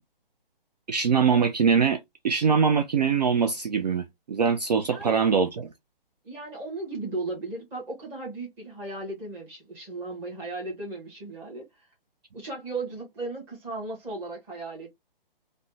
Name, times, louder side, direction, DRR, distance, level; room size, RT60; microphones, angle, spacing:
voice 1, 0.9-5.7, right 6 dB, 45° right, 0.4 m, -23 dB
voice 2, 4.8-5.2 6.2-11.7 12.3-14.9, right 2 dB, 10° right, 0.8 m, -36 dB
3.3 x 2.1 x 2.6 m
hypercardioid pair, 155°, 29 cm